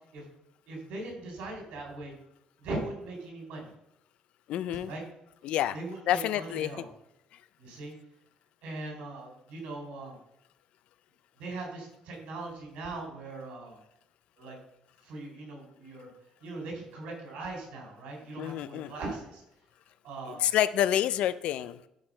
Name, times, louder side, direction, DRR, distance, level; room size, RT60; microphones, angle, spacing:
voice 1, 0.7-2.1 2.6-3.7 4.8-5.0 5.7-6.9 7.6-7.9 8.6-10.2 11.4-13.8 14.4-14.6 15.0-16.1 16.4-19.4 20.0-20.5, right 2 dB, 75° right, 1 dB, 4.2 m, -40 dB
voice 2, 4.5-4.9 5.4-5.8 6.1-6.7 18.4-18.9 20.3-21.9, left 11 dB, 70° left, 15 dB, 0.5 m, -28 dB
12.0 x 5.0 x 5.5 m, 0.83 s
cardioid pair, 165°, 2 cm